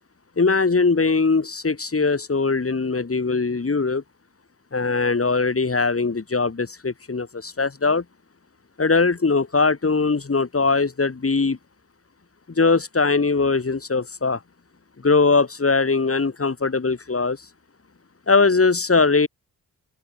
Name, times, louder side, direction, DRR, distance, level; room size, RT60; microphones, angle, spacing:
voice 1, 0.4-4.0 4.7-8.0 8.8-11.6 12.6-14.4 15.0-17.4 18.3-19.3, left 4 dB, 35° left, 3.9 m, -21 dB
supercardioid pair, 55°, 42 cm